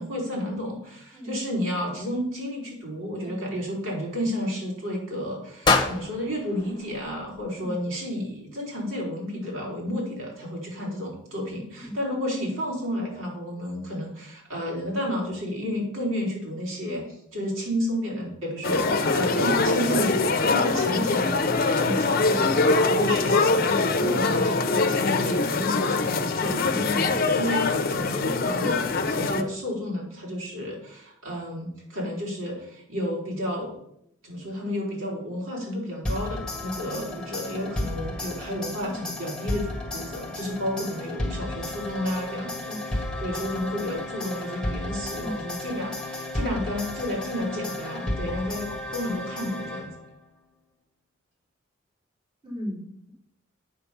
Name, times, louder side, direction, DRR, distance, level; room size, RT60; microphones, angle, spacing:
voice 1, 0.0-23.7 24.0-33.7 34.2-42.5 42.9-49.9, equal, 85° right, -3 dB, 4.0 m, -31 dB
sound 1, 5.6-7.8, left 4 dB, 20° left, 1.0 m, -27 dB
sound 2, 18.6-29.4, left 3 dB, 45° left, 0.7 m, -23 dB
sound 3, 36.0-50.2, left 1 dB, 5° left, 1.5 m, -33 dB
voice 2, 52.4-52.8, equal, 25° right, -5 dB, 3.8 m, -36 dB
8.6 x 5.8 x 6.9 m, 0.74 s
head